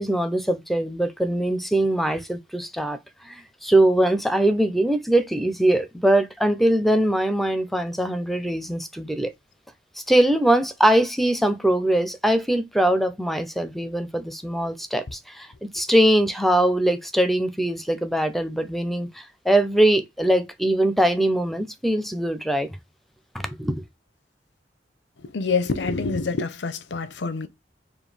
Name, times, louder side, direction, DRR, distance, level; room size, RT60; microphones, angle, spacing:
voice 1, 0.0-3.0 3.2-9.3 10.1-22.7 23.3-23.7, right 1 dB, ahead, 0.5 m, -22 dB
voice 2, 25.2-27.5, left 4 dB, 85° left, 0.6 m, -26 dB
5.0 x 2.3 x 3.3 m
head